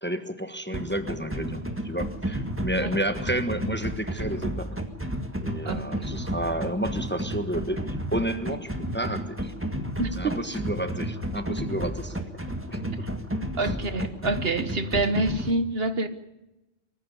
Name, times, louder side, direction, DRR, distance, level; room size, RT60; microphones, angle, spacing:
voice 1, 0.0-4.8 5.4-9.5 10.1-12.4 12.7-13.1 13.6-13.8, right 1 dB, 10° left, 8 dB, 1.2 m, -31 dB
sound 1, 0.7-15.5, equal, 10° right, 1.7 m, -32 dB
voice 2, 5.6-6.1 10.0-10.3 12.9-13.0 13.6-16.1, right 2 dB, 60° right, 10 dB, 1.5 m, -27 dB
23.0 x 15.0 x 8.6 m, 0.96 s
omnidirectional pair, 1.1 m